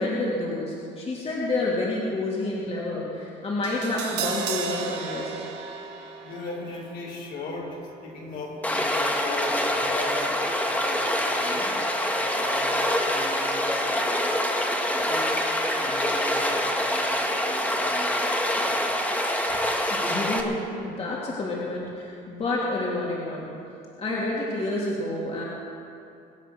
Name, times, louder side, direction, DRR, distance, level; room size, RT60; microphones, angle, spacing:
voice 1, 0.0-5.3 19.9-23.5 23.9-25.4, left 2 dB, 35° left, -5 dB, 3.2 m, -29 dB
Crash cymbal, 3.6-9.8 10.1-10.2, right 6 dB, 85° right, 1.7 m, -36 dB
voice 2, 6.2-11.8 12.1-15.4 15.8-19.2, left 2 dB, 65° left, -2 dB, 4.6 m, -38 dB
Stream, 8.6-20.4, left 1 dB, 10° left, 1.7 m, -25 dB
24.0 x 8.4 x 6.2 m, 2.5 s
cardioid pair, 110°, 17 cm